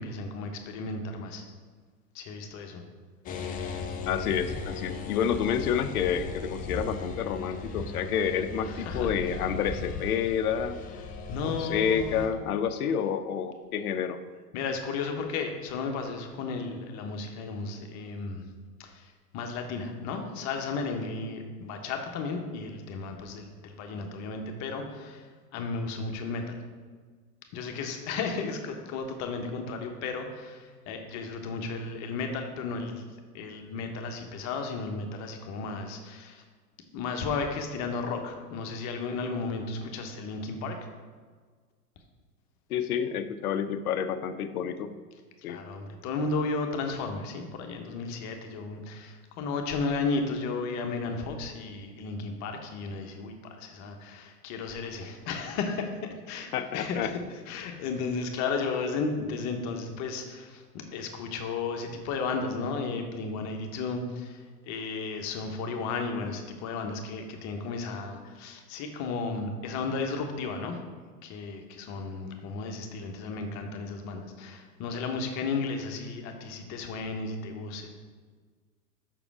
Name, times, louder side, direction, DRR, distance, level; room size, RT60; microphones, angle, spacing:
voice 1, 0.0-1.4 2.1-2.8 8.7-9.1 11.3-12.3 14.5-18.4 18.8-26.6 27.5-33.1 33.3-36.4 36.9-40.8 45.5-55.9 56.3-57.1 57.5-70.8 71.2-77.9, left 4 dB, 35° left, 4 dB, 1.0 m, -34 dB
sound 1, 3.3-12.3, left 4 dB, 20° left, 0.6 m, -37 dB
voice 2, 4.1-10.8 11.4-14.2 42.7-44.9 45.4-45.6 56.5-57.1, left 8 dB, 65° left, 10 dB, 0.7 m, -29 dB
7.0 x 5.9 x 4.7 m, 1.5 s
figure-of-eight pair, 90°, 48 cm